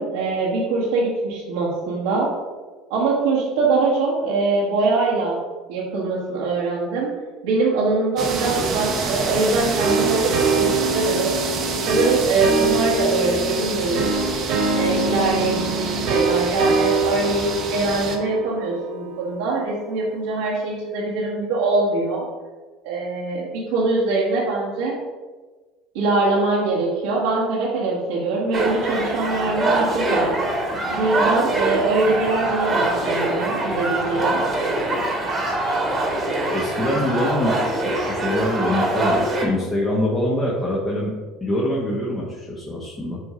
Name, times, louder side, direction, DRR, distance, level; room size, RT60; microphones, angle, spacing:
voice 1, 0.0-2.3 2.9-5.4 5.7-7.1 7.4-11.3 11.9-14.1 14.7-22.2 22.8-25.0 25.9-30.3 30.9-34.4, right 3 dB, 85° right, -7 dB, 1.5 m, -23 dB
sound 1, 8.2-18.2, right 4 dB, 45° right, 1.0 m, -28 dB
sound 2, 9.8-20.3, right 3 dB, 65° right, 1.6 m, -24 dB
sound 3, 28.5-39.5, right 2 dB, 25° right, 1.5 m, -23 dB
voice 2, 36.5-41.1 41.4-43.2, left 1 dB, 15° left, -5 dB, 1.3 m, -24 dB
7.9 x 2.7 x 5.0 m, 1.3 s
supercardioid pair, 100°, 0 cm